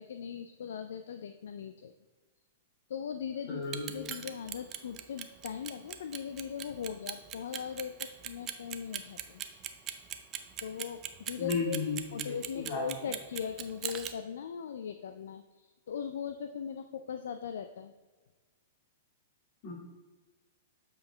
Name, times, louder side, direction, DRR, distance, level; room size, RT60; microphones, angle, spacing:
voice 1, 0.0-1.9 2.9-9.4 10.6-11.8 12.1-15.4 15.9-17.9, left 7 dB, 70° left, 8 dB, 0.3 m, -39 dB
voice 2, 3.5-4.1 11.4-12.8 19.6-19.7, left 4 dB, 50° left, -1 dB, 2.1 m, -34 dB
Clock, 3.6-14.1, right 11 dB, 35° right, 0.5 m, -39 dB
7.5 x 4.5 x 3.4 m, 1.3 s
hypercardioid pair, 110°, 0 cm